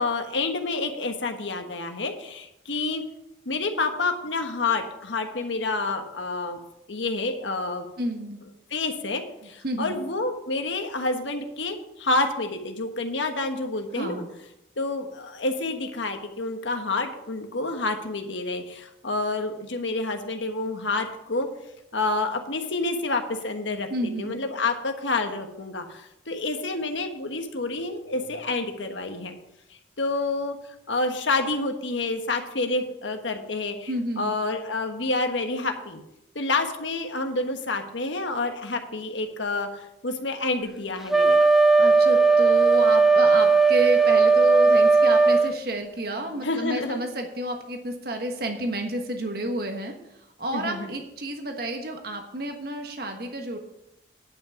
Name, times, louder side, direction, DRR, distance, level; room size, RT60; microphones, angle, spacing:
voice 1, 0.0-3.0 3.4-6.6 6.9-7.8 8.7-14.2 14.8-21.5 21.9-23.9 24.2-29.3 30.0-30.6 30.9-33.9 34.2-36.0 36.3-41.4 46.4-47.0 50.5-50.9, left 3 dB, 85° left, 5 dB, 1.4 m, -28 dB
voice 2, 8.0-8.4 9.6-10.0 13.9-14.3 23.9-24.4 33.9-34.3 41.8-53.6, right 1 dB, 55° right, 4 dB, 1.3 m, -30 dB
Wind instrument woodwind instrument, 41.1-45.5, right 4 dB, ahead, 0.5 m, -17 dB
10.0 x 5.8 x 7.0 m, 0.85 s
head